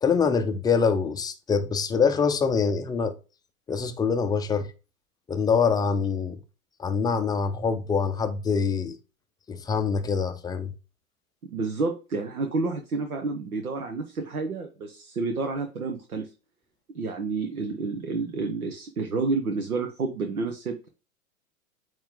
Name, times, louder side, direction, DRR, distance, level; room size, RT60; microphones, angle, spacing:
voice 1, 0.0-3.1 3.7-4.7 5.3-6.4 6.8-9.0 9.5-10.7, left 5 dB, 10° left, 0.4 m, -24 dB
voice 2, 11.5-16.3 16.9-20.9, right 4 dB, 85° right, 1.1 m, -29 dB
8.7 x 3.2 x 3.8 m
hypercardioid pair, 105°, 42 cm